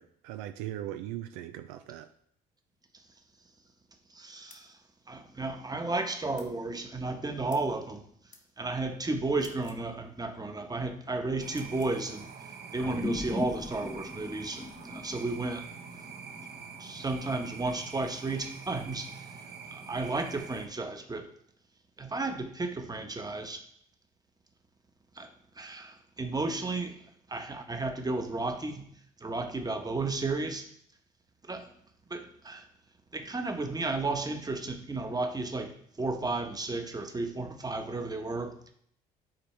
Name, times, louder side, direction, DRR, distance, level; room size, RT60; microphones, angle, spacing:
voice 1, 0.0-2.1, right 13 dB, 70° right, 9 dB, 0.4 m, -39 dB
voice 2, 4.1-4.8 5.1-8.0 8.6-12.3 12.7-15.7 16.8-19.3 19.7-21.3 22.0-23.6 25.2-25.3 25.6-27.0 27.3-28.9 29.2-30.7 31.4-31.7 32.1-32.6 33.1-35.7 36.0-38.5, right 3 dB, 20° right, 6 dB, 1.1 m, -33 dB
sound 1, 4.5-4.7 6.4-6.5 7.5-7.7 8.3-8.5 9.3-9.8 11.5-12.0, left 4 dB, 40° left, 1.4 m, -55 dB
sound 2, 11.4-20.7, right 5 dB, 50° right, 1.1 m, -45 dB
sound 3, 12.8-17.5, left 2 dB, 15° left, 0.9 m, -39 dB
8.8 x 4.0 x 3.2 m, 0.66 s
hypercardioid pair, 50°, 21 cm